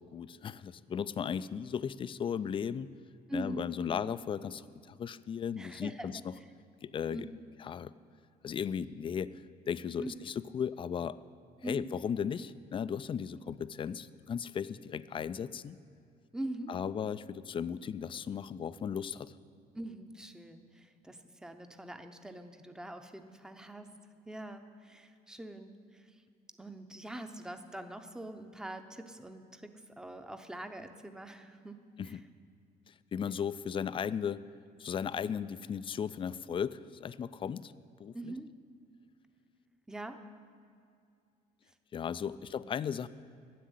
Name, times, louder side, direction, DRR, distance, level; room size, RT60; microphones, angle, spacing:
voice 1, 0.1-2.9 3.3-6.4 6.8-7.3 7.6-7.9 8.4-11.2 11.6-15.8 16.7-19.3 32.0-32.2 32.9-34.4 34.8-37.7 38.0-38.3 41.9-43.1, left 7 dB, 30° left, 16 dB, 0.4 m, -36 dB
voice 2, 3.3-4.0 5.6-6.2 7.1-7.4 10.0-10.3 11.6-11.9 13.5-13.6 16.3-16.7 19.7-23.9 24.3-26.2 26.6-31.8 32.0-32.2 38.1-38.5 39.9-40.2 42.2-42.5, right 1 dB, 5° right, 7 dB, 0.7 m, -43 dB
10.0 x 7.4 x 9.6 m, 2.4 s
cardioid pair, 110°, 17 cm